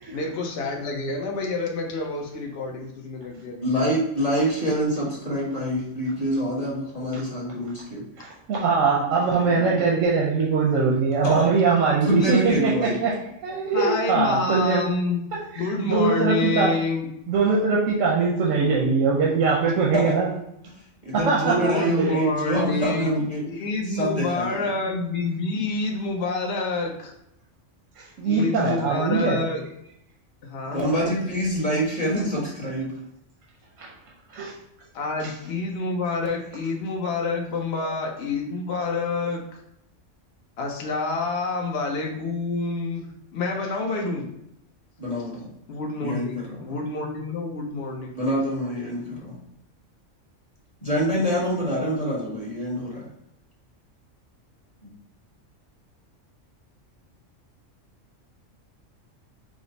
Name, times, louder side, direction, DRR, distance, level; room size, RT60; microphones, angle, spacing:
voice 1, 0.1-3.7 9.0-9.9 13.7-17.1 21.5-27.1 28.2-29.6 30.4-31.2 34.9-39.6 40.6-44.3 45.7-48.1, left 3 dB, 60° left, 1 dB, 0.9 m, -28 dB
voice 2, 3.6-8.0 11.2-11.5 12.1-13.0 19.9-20.1 21.0-23.5 23.9-24.6 30.7-32.9 45.0-45.5 46.0-46.6 48.1-49.3 50.8-53.1, equal, 30° left, -5 dB, 1.3 m, -25 dB
voice 3, 8.2-13.1 13.4-14.9 15.8-16.7 17.3-20.3 21.3-22.2 28.0-29.4 33.8-33.9 34.3-34.5, right 4 dB, 90° right, -3 dB, 1.1 m, -22 dB
5.0 x 2.0 x 3.9 m, 0.78 s
omnidirectional pair, 1.3 m